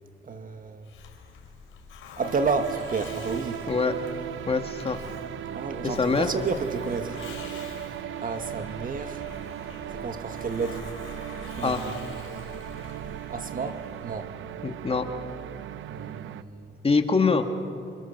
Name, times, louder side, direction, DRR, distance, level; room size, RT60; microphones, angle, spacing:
voice 1, 0.2-0.9 2.2-3.6 5.5-7.2 7.4-7.7 8.2-9.2 9.9-10.8 11.6-12.0 13.3-14.3 15.9-16.7, right 4 dB, 45° right, 7 dB, 1.9 m, -31 dB
Hiss, 0.8-14.3, left 6 dB, 85° left, 3.9 m, -46 dB
sound 1, 2.2-16.4, right 11 dB, 75° right, 0.8 m, -37 dB
voice 2, 4.5-5.0 5.8-6.3 11.6-11.8 14.6-15.1 16.8-17.6, left 4 dB, 30° left, 6 dB, 2.1 m, -24 dB
28.5 x 28.0 x 6.8 m, 2.5 s
cardioid pair, 90°, 20 cm